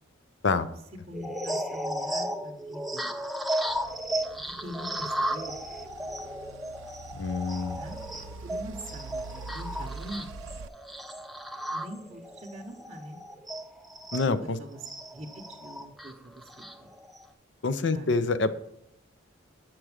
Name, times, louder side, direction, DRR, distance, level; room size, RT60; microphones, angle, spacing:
sound 1, 1.1-14.3 14.8-17.3, right 1 dB, ahead, 0.3 m, -35 dB
voice 1, 1.1-3.1 4.1-5.6 7.7-8.0 8.4-10.3 11.7-13.2 14.2-14.8 15.1-16.9 17.9-18.1, equal, 30° right, -2 dB, 0.8 m, -43 dB
sound 2, 3.7-10.7, right 4 dB, 70° right, 0.4 m, -44 dB
voice 2, 7.1-7.8 14.1-14.6 17.6-18.5, left 3 dB, 60° left, 12 dB, 0.5 m, -26 dB
7.5 x 6.0 x 4.8 m, 0.79 s
head